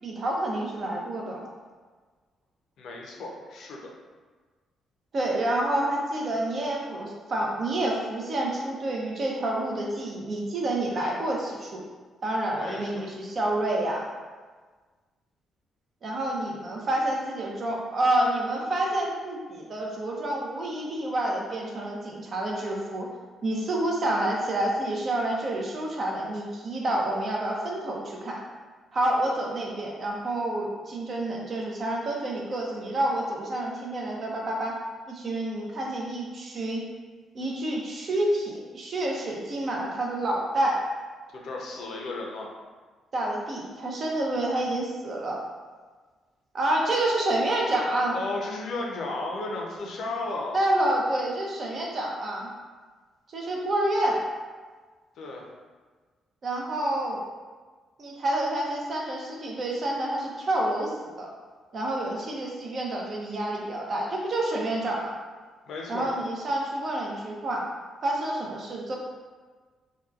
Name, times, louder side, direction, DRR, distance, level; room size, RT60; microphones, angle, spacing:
voice 1, 0.0-1.5 5.1-11.8 12.2-14.1 16.0-23.1 23.4-28.4 28.9-34.8 35.1-36.8 37.3-40.8 43.1-45.4 46.5-48.1 50.5-52.5 53.3-54.2 56.4-57.2 58.0-61.3 61.7-65.2 65.9-67.7 68.0-69.0, right 1 dB, 45° right, -2 dB, 0.6 m, -28 dB
voice 2, 2.8-3.9 12.6-13.0 41.4-42.5 48.1-50.6 55.2-55.5 65.7-66.1, left 2 dB, 70° left, -1 dB, 0.5 m, -34 dB
2.8 x 2.2 x 2.3 m, 1.4 s
cardioid pair, 90°, 0 cm